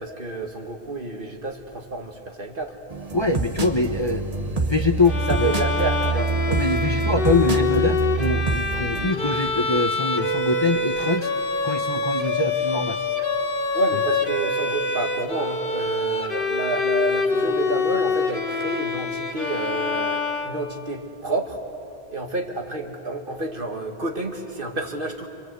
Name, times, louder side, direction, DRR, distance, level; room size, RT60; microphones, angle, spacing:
voice 1, 0.0-2.7 5.3-6.3 13.7-21.6 22.1-25.3, right 2 dB, 55° right, 3 dB, 2.1 m, -29 dB
sound 1, 2.9-9.1, right 4 dB, 35° right, 1.3 m, -26 dB
voice 2, 3.1-5.5 6.5-11.3 11.6-13.0, left 3 dB, 30° left, 5 dB, 0.8 m, -24 dB
Bowed string instrument, 5.0-21.0, left 3 dB, 55° left, 1.6 m, -26 dB
29.5 x 23.5 x 8.1 m, 2.8 s
omnidirectional pair, 1.1 m